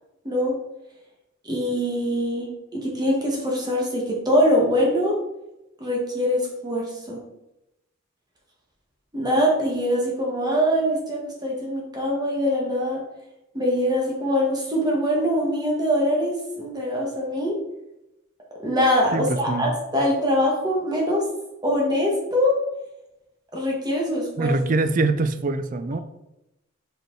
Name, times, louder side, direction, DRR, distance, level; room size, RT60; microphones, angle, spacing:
voice 1, 0.2-0.6 1.4-5.2 5.8-7.2 9.1-13.0 13.5-17.5 18.6-21.2 21.6-22.6 23.5-24.6, equal, 20° right, -2 dB, 1.5 m, -23 dB
voice 2, 19.1-19.7 24.4-26.0, right 3 dB, 35° right, 11 dB, 0.4 m, -23 dB
5.2 x 4.5 x 4.5 m, 0.91 s
head